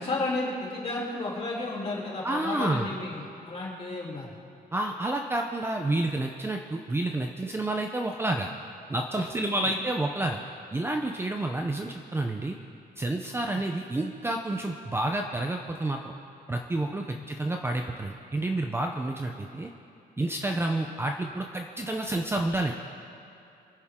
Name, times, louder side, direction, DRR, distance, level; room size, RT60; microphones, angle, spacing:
voice 1, 0.0-4.4 9.5-9.7 13.5-13.6 17.1-17.2 20.5-20.6, left 2 dB, 35° left, -5 dB, 3.4 m, -33 dB
voice 2, 2.2-2.9 4.7-8.5 8.9-10.4 10.7-12.6 13.0-16.1 16.5-19.7 20.2-22.7, right 2 dB, 15° right, 3 dB, 0.7 m, -29 dB
26.5 x 10.5 x 3.7 m, 2.7 s
wide cardioid pair, 165°, 17 cm